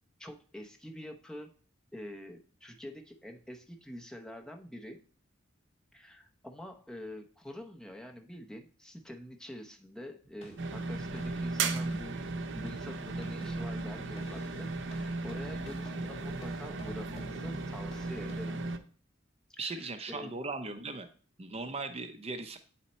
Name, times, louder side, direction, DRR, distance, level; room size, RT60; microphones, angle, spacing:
voice 1, 0.2-1.5 1.9-5.0 5.9-12.2 12.5-18.6 19.5-20.3, left 1 dB, 5° left, 3 dB, 0.7 m, -46 dB
sound 1, 10.2-18.6, right 1 dB, 35° left, 1.7 m, -50 dB
sound 2, 10.6-18.8, right 3 dB, 65° right, 0.7 m, -36 dB
voice 2, 19.6-21.1 21.4-22.6, right 3 dB, 30° right, 8 dB, 0.6 m, -38 dB
8.9 x 4.3 x 4.2 m, 0.42 s
head